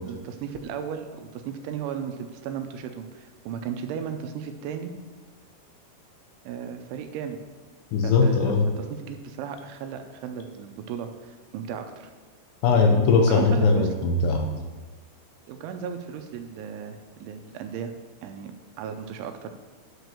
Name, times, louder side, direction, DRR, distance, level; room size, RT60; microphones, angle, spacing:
voice 1, 0.0-4.9 6.5-7.4 8.0-12.1 13.2-13.9 15.5-17.9 18.2-18.5 18.8-19.5, right 7 dB, 80° right, 6 dB, 3.0 m, -35 dB
voice 2, 7.9-8.7 12.6-14.5, left 4 dB, 80° left, 3 dB, 2.8 m, -20 dB
11.5 x 4.7 x 6.7 m, 1.3 s
omnidirectional pair, 5.6 m